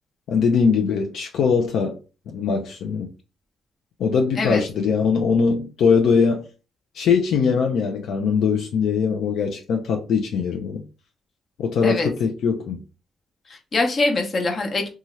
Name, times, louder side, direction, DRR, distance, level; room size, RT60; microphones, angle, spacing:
voice 1, 0.3-1.9 2.3-3.1 4.0-6.4 6.9-10.8 11.6-12.8, left 5 dB, 75° left, 3 dB, 0.4 m, -21 dB
voice 2, 13.5-14.9, left 3 dB, 40° left, 3 dB, 0.8 m, -23 dB
2.7 x 2.4 x 3.0 m, 0.33 s
cardioid pair, 90°, 0 cm